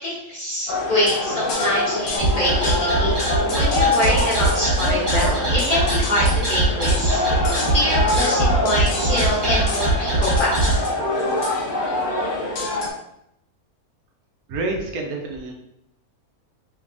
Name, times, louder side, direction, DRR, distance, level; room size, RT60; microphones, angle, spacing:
voice 1, 0.0-3.1 3.6-7.4 7.7-10.6, left 1 dB, 40° left, -7 dB, 1.2 m, -25 dB
sound 1, 0.7-12.9, left 2 dB, 55° left, 0.6 m, -24 dB
sound 2, 2.2-10.8, right 2 dB, 50° right, 1.5 m, -21 dB
voice 2, 14.5-15.5, right 2 dB, 80° right, 1 dB, 1.1 m, -28 dB
3.3 x 3.2 x 2.5 m, 0.81 s
omnidirectional pair, 1.5 m